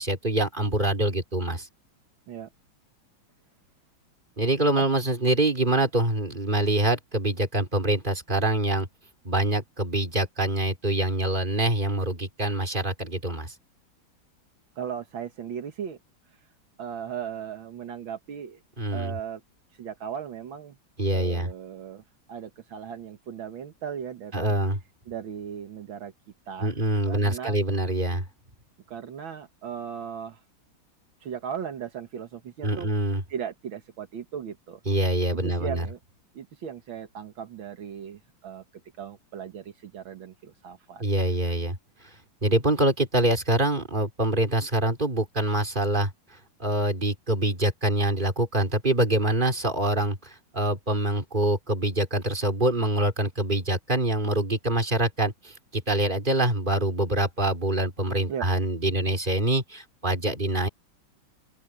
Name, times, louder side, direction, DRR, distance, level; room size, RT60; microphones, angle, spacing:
voice 1, 0.0-1.7 4.4-8.9 9.2-13.5 18.8-19.2 21.0-21.5 24.3-24.8 26.6-28.2 32.6-33.2 34.9-35.9 41.0-41.8 42.4-46.1 46.6-60.7, right 1 dB, 20° right, 4.2 m, -25 dB
voice 2, 14.8-16.0 16.8-18.6 18.9-19.4 19.8-20.8 21.1-22.0 22.3-24.6 25.1-26.1 26.5-26.7 27.1-27.6 28.9-30.4 31.2-32.9 33.3-34.8 35.3-36.0 36.4-38.6 39.0-41.0 58.3-58.5, right 8 dB, 75° right, 2.2 m, -37 dB
open air
omnidirectional pair, 2.2 m